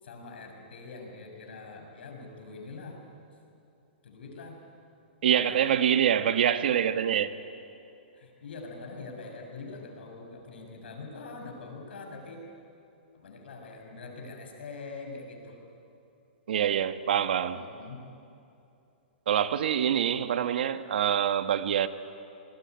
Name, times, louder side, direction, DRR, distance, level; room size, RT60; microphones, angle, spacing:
voice 1, 0.0-3.0 4.0-4.6 5.3-5.9 8.1-12.5 13.1-15.6 17.5-18.0, left 3 dB, 75° left, 6.9 m, -44 dB
voice 2, 5.2-7.3 16.5-17.6 19.3-21.9, right 9 dB, 65° right, 1.3 m, -25 dB
28.0 x 21.0 x 9.5 m
hypercardioid pair, 170°, 6 cm